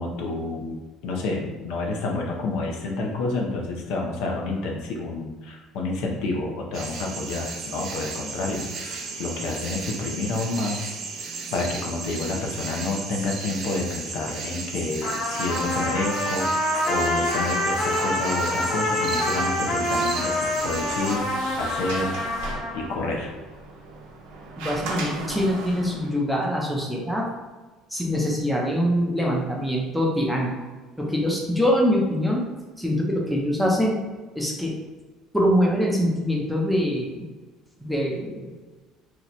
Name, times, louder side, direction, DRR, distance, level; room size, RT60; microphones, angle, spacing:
voice 1, 0.0-10.8 11.5-21.2 21.6-22.2 22.7-23.3, left 3 dB, 75° left, 0 dB, 0.7 m, -29 dB
sound 1, 6.7-21.2, right 4 dB, 45° right, 0.5 m, -35 dB
Trumpet, 15.0-22.9, left 1 dB, 40° left, 0.9 m, -26 dB
Sliding door, 20.5-26.1, right 3 dB, 85° right, 0.7 m, -37 dB
voice 2, 24.6-27.3 27.9-30.5 31.0-32.5 32.8-34.0 34.4-34.7 35.3-37.2 37.8-38.5, equal, ahead, -2 dB, 0.6 m, -24 dB
2.9 x 2.2 x 4.0 m, 1.3 s
cardioid pair, 140°, 0 cm